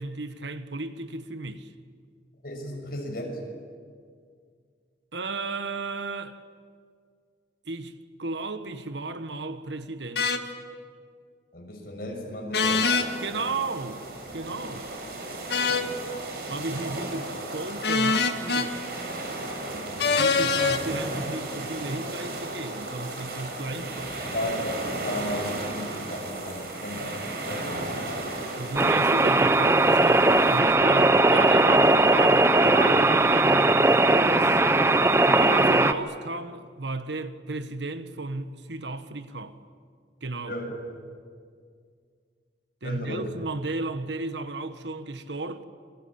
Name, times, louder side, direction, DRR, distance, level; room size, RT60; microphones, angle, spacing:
voice 1, 0.0-1.7 5.1-6.4 7.7-10.3 13.2-14.1 14.3-14.9 16.5-18.8 20.2-24.3 28.6-34.6 35.2-39.6 40.2-40.5 42.8-45.6, right 3 dB, 85° right, 1.5 m, -34 dB
voice 2, 2.4-3.4 11.5-12.9 15.8-16.1 19.7-20.3 23.7-23.8 24.3-27.9 28.8-29.0 40.5-41.0 42.8-43.3, left 1 dB, 55° left, 6.7 m, -35 dB
sound 1, 10.2-10.4 12.5-13.1 15.5-15.9 17.8-18.7 20.0-20.8, left 4 dB, 70° left, 1.8 m, -23 dB
sound 2, 12.5-30.6, right 2 dB, 60° right, 5.7 m, -35 dB
sound 3, 28.8-35.9, right 2 dB, 15° right, 0.8 m, -19 dB
28.0 x 23.0 x 8.8 m
head